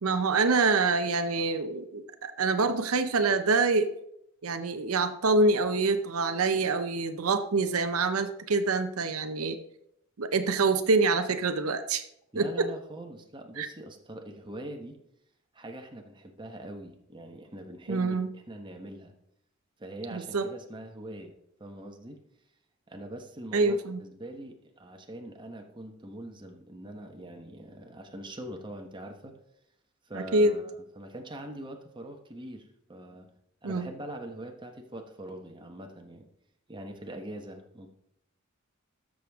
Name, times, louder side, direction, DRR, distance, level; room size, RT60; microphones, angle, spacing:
voice 1, 0.0-3.9 4.4-9.6 10.2-12.0 12.4-12.7 13.6-13.7 17.9-18.3 20.1-20.5 23.5-24.0 30.1-30.6 33.6-33.9, right 3 dB, 85° right, 9 dB, 0.7 m, -26 dB
voice 2, 12.3-15.0 15.5-19.1 19.8-21.3 21.6-22.2 22.9-29.4 30.1-33.3 33.6-36.3 36.7-37.9, right 1 dB, 20° right, 3 dB, 1.2 m, -43 dB
13.0 x 6.4 x 3.6 m, 0.77 s
head